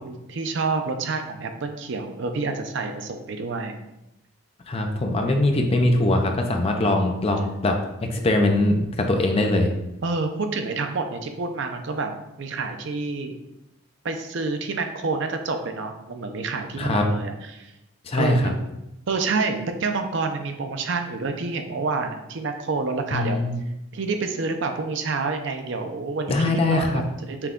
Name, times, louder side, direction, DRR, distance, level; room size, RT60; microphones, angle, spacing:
voice 1, 0.0-3.8 4.7-5.0 10.0-13.3 14.0-17.7 18.1-18.6 19.1-23.4 23.9-27.5, right 4 dB, 60° right, 6 dB, 0.5 m, -28 dB
voice 2, 4.7-9.7 16.8-17.0 18.1-18.5 23.1-23.6 26.3-27.0, left 2 dB, 30° left, 3 dB, 0.4 m, -22 dB
5.8 x 2.2 x 3.6 m, 0.89 s
head